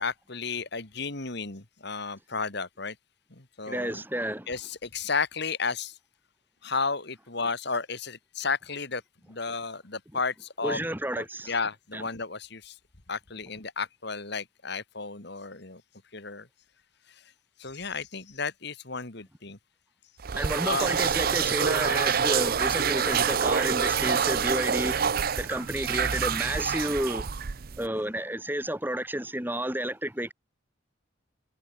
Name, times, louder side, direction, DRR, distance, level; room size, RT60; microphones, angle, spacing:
voice 1, 0.0-3.0 3.3-4.0 4.5-5.9 6.6-9.0 9.3-10.8 11.2-12.7 13.1-15.8 16.1-16.5 17.6-19.6 20.6-20.9 21.5-21.6, left 4 dB, 55° left, 2.2 m, -33 dB
voice 2, 3.7-4.5 10.6-11.5 11.9-12.0 20.4-25.1 25.4-27.3 27.8-30.3, right 1 dB, 10° right, 4.3 m, -31 dB
sound 1, 20.2-27.9, right 7 dB, 45° right, 0.5 m, -26 dB
head